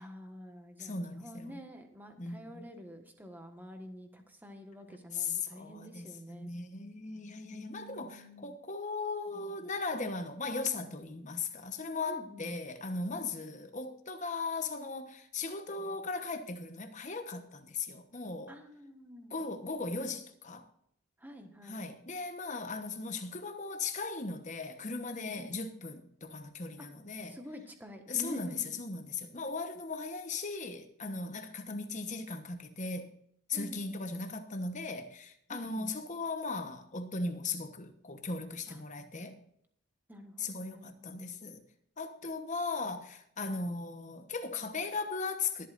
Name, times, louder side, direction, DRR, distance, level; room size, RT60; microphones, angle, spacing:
voice 1, 0.0-6.5 7.5-8.5 12.1-12.5 18.5-19.4 21.2-21.9 25.4-25.6 26.8-26.9 27.2-28.7 33.5-33.9 35.5-35.9 38.7-38.8 40.1-41.4, equal, 10° right, 1.3 m, -48 dB
voice 2, 0.8-1.6 2.2-2.6 4.9-18.6 19.3-20.7 21.6-27.4 28.1-33.1 33.5-39.4 40.4-41.6 42.0-45.7, left 4 dB, 35° left, 1.0 m, -38 dB
23.0 x 8.3 x 2.5 m
head